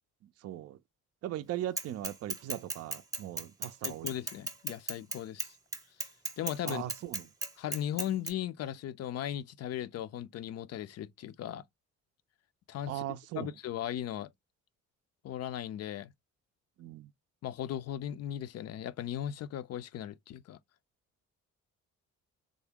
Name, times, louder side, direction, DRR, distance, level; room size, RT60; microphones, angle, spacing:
voice 1, 0.2-0.8 1.2-4.2 6.7-7.2 12.9-13.5 16.8-17.1, right 12 dB, 55° right, 0.4 m, -39 dB
Bicycle / Mechanisms, 1.8-8.3, right 2 dB, 10° right, 0.7 m, -36 dB
voice 2, 3.8-5.6 6.4-6.8 7.6-11.6 12.7-13.0 13.4-14.3 15.2-16.1 17.4-20.6, left 11 dB, 55° left, 0.5 m, -37 dB
3.6 x 2.0 x 3.4 m
cardioid pair, 90°, 30 cm